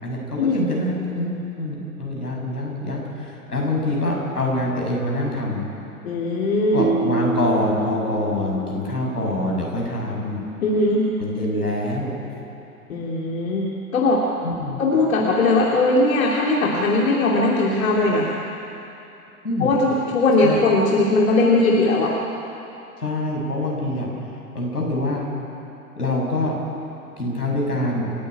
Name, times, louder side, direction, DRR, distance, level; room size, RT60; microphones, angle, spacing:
voice 1, 0.0-5.7 6.7-10.4 11.2-12.1 14.4-14.8 19.4-19.7 20.4-20.6 23.0-24.1 24.5-25.2 26.0-26.6 27.2-28.1, left 1 dB, 85° left, -2 dB, 6.4 m, -25 dB
voice 2, 6.0-6.9 10.6-11.1 12.9-14.2 14.8-18.3 19.6-22.1, left 2 dB, 60° left, -3 dB, 2.8 m, -19 dB
Keyboard (musical), 6.8-9.6, right 1 dB, 10° right, 2.0 m, -28 dB
28.5 x 10.0 x 8.9 m, 2.8 s
figure-of-eight pair, 105°, 45 cm